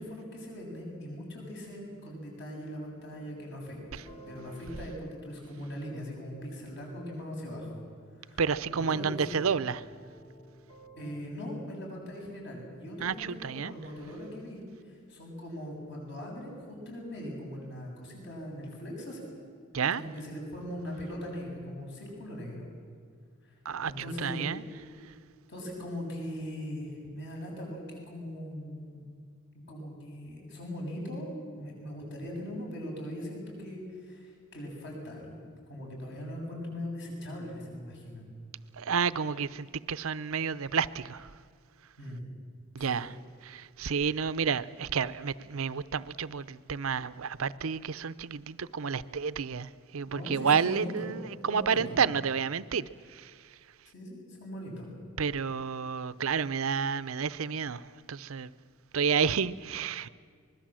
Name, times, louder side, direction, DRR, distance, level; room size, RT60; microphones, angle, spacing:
voice 1, 0.0-7.7 8.2-8.4 8.7-9.4 10.9-19.4 19.9-22.7 23.4-23.6 23.8-24.5 25.5-29.0 29.5-35.4 35.7-38.3 42.0-42.2 42.8-43.0 50.1-51.1 51.4-52.0 53.9-54.9, equal, 50° left, 7.8 m, -40 dB
sound 1, 3.1-6.5 8.7-11.2, right 1 dB, 30° left, 1.7 m, -52 dB
voice 2, 8.4-9.9 13.0-13.7 19.7-20.0 23.6-24.6 25.0-25.1 38.7-41.3 42.7-43.1 43.4-53.5 55.2-58.5 58.9-60.1, right 6 dB, 75° right, 0.6 m, -30 dB
24.5 x 21.0 x 7.6 m
head